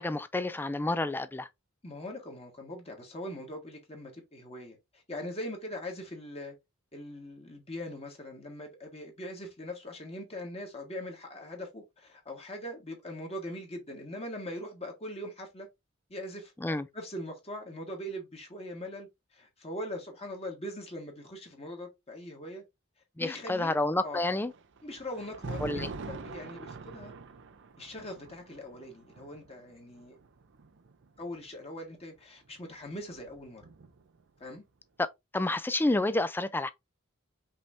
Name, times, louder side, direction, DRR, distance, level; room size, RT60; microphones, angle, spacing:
voice 1, 0.0-1.5 16.6-16.9 23.2-24.5 25.6-25.9 35.0-35.1 35.3-36.7, left 2 dB, 10° left, 0.4 m, -29 dB
voice 2, 1.8-6.5 6.9-15.7 16.1-16.5 16.9-22.6 23.2-23.7 24.0-24.2 24.8-27.1 27.8-30.2 31.2-33.7 34.4-34.6, left 1 dB, 30° left, 1.5 m, -41 dB
Thunder, 24.2-31.4 32.5-34.2, right 4 dB, 60° right, 0.6 m, -44 dB
5.5 x 3.4 x 2.6 m
head